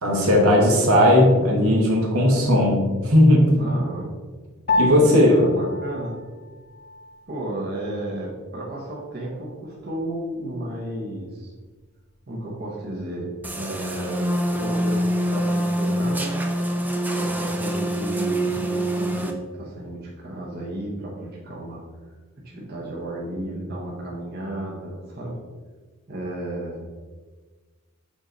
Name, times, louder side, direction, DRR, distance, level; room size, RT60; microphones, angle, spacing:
voice 1, 0.0-3.4 4.8-5.5, left 1 dB, 85° right, -2 dB, 1.6 m, -17 dB
voice 2, 3.6-4.1 5.1-6.2 7.3-11.5 12.3-16.4 17.1-21.8 22.4-25.4 26.1-26.8, right 1 dB, 45° right, -4 dB, 1.0 m, -33 dB
Piano, 4.7-14.3, left 2 dB, 45° left, 0.5 m, -33 dB
sound 1, 13.4-19.3, right 1 dB, 10° right, 0.3 m, -25 dB
7.8 x 3.1 x 3.9 m, 1.4 s
head